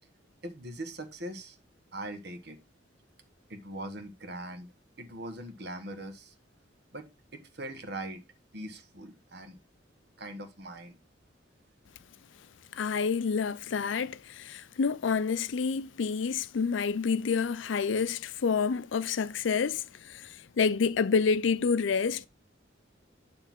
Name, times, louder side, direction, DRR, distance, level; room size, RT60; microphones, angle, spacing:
voice 1, 0.4-1.6 1.9-2.6 3.5-4.7 5.0-6.3 6.9-8.2 8.5-9.6 10.2-11.0, right 1 dB, 60° right, 1.3 m, -41 dB
voice 2, 12.7-22.3, left 5 dB, 80° left, 0.5 m, -28 dB
9.3 x 3.3 x 5.9 m
head